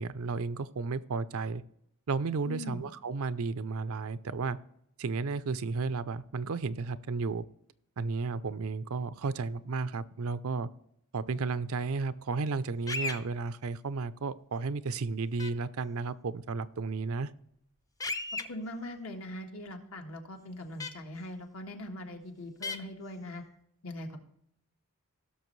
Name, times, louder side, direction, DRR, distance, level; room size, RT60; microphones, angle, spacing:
voice 1, 0.0-1.6 2.1-4.6 5.0-7.4 8.0-10.7 11.1-17.3, right 4 dB, 70° right, 15 dB, 0.5 m, -33 dB
voice 2, 2.4-2.8 18.5-23.4 23.8-24.2, left 1 dB, 70° left, 3 dB, 1.5 m, -41 dB
sound 1, 12.9-13.2 15.4-15.5 18.0-18.4 20.8-20.9 22.6-22.8, left 3 dB, 15° left, 0.5 m, -34 dB
17.0 x 6.5 x 3.1 m, 0.73 s
head